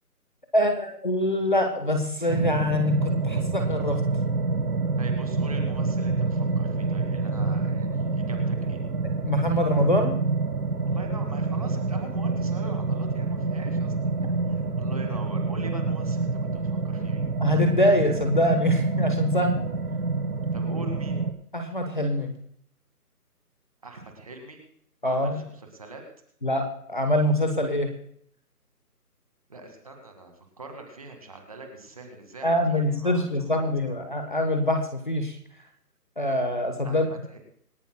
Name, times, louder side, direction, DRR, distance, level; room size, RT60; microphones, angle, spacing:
voice 1, 0.5-4.0 9.2-10.1 17.4-19.7 21.5-22.3 25.0-25.4 26.4-28.0 32.4-35.4 36.2-37.1, left 1 dB, 30° left, 5 dB, 1.1 m, -24 dB
sound 1, 2.3-21.3, right 3 dB, 75° right, 2.5 m, -27 dB
voice 2, 5.0-8.8 10.8-14.1 14.5-17.2 20.5-21.2 23.8-24.6 25.0-26.0 29.5-32.5 32.7-34.0 36.8-37.4, right 2 dB, 25° right, 4 dB, 1.9 m, -43 dB
27.0 x 11.0 x 2.2 m, 0.66 s
figure-of-eight pair, 175°, 47 cm